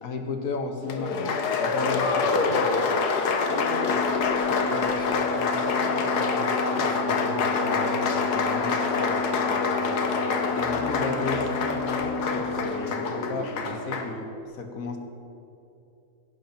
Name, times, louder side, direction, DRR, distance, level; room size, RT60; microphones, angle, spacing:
voice 1, 0.0-1.3 1.6-2.2 8.5-8.8 10.5-14.3 14.5-15.0, left 4 dB, 60° left, 5 dB, 1.7 m, -33 dB
Applause, 0.9-14.1, left 4 dB, 85° left, 1.6 m, -26 dB
voice 2, 2.2-2.7 3.5-4.0 4.4-8.4 9.1-9.9, right 2 dB, 40° right, -1 dB, 1.5 m, -38 dB
sound 1, 3.4-13.4, left 4 dB, 20° left, 0.5 m, -33 dB
sound 2, 6.9-14.1, right 2 dB, 70° right, 4.0 m, -43 dB
16.5 x 11.0 x 4.5 m, 2.9 s
omnidirectional pair, 1.7 m